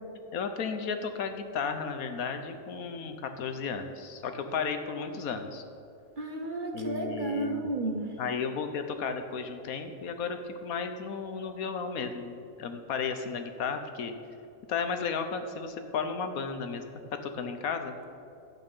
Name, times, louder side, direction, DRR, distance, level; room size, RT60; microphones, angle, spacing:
voice 1, 0.3-5.6 6.7-7.7 8.2-14.1 14.7-16.8 17.2-17.9, left 5 dB, 80° left, 7 dB, 1.3 m, -34 dB
voice 2, 6.2-8.1, right 2 dB, 40° right, 3 dB, 1.1 m, -32 dB
11.5 x 8.9 x 5.5 m, 2.6 s
omnidirectional pair, 1.5 m